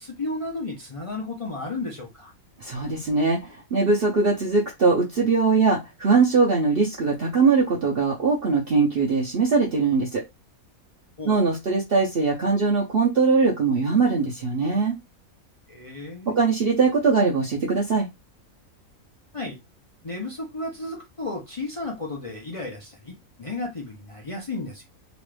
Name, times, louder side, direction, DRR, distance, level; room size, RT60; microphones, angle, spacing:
voice 1, 0.0-2.3 11.2-11.4 15.7-16.3 19.3-19.6 20.0-25.0, left 2 dB, 35° left, 0.5 m, -33 dB
voice 2, 2.6-10.2 11.2-15.0 16.3-18.1, right 4 dB, 50° right, 0.8 m, -21 dB
3.0 x 2.4 x 3.2 m
omnidirectional pair, 1.5 m